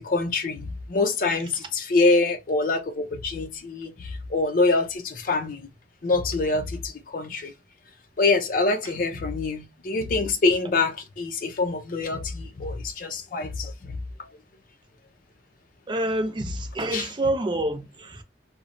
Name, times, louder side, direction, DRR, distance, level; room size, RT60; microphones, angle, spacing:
voice 1, 0.0-5.7 6.0-6.8 7.1-7.5 8.2-13.7 16.9-17.0, left 3 dB, 50° left, 0.5 m, -25 dB
voice 2, 15.9-18.2, right 1 dB, 25° right, 0.4 m, -28 dB
2.9 x 2.0 x 2.5 m
head